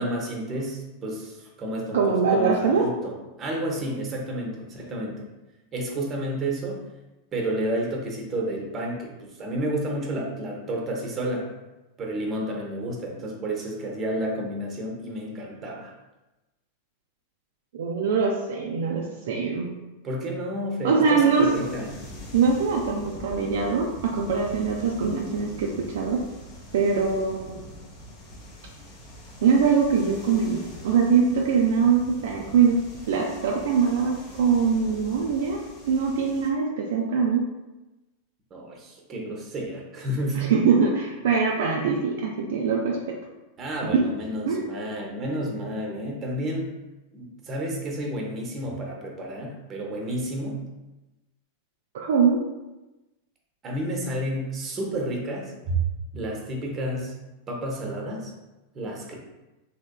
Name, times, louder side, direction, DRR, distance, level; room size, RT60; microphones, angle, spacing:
voice 1, 0.0-5.2 5.7-6.8 7.3-11.5 12.0-15.9 20.0-21.9 38.5-40.5 43.6-46.7 47.1-50.6 53.6-55.8 56.1-57.1 57.5-58.3 58.7-59.1, right 1 dB, 25° right, 0 dB, 0.7 m, -31 dB
voice 2, 1.9-2.9 17.7-19.7 20.8-21.5 22.3-23.9 24.1-26.2 26.7-27.6 29.4-32.8 33.1-35.6 35.9-37.5 40.3-43.2 43.9-44.1 44.5-44.7 51.9-52.4, right 5 dB, 55° right, -2 dB, 0.4 m, -22 dB
sound 1, 21.3-36.5, left 1 dB, 35° left, 0.7 m, -44 dB
3.5 x 2.8 x 2.2 m, 1.1 s
figure-of-eight pair, 90°, 0 cm